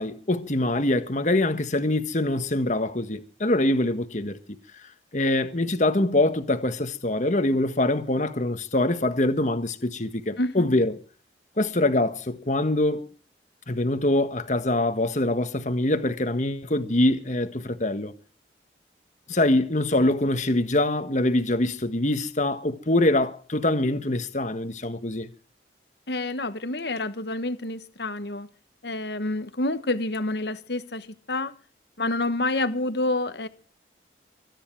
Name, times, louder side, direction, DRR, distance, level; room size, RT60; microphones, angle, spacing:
voice 1, 0.0-4.6 5.1-11.0 11.6-13.1 13.7-18.1 19.3-25.3, left 1 dB, 40° left, 1.5 m, -24 dB
voice 2, 10.4-10.7 26.1-28.5 28.8-31.5 32.0-33.5, left 2 dB, 65° left, 1.3 m, -28 dB
24.0 x 10.0 x 4.7 m
head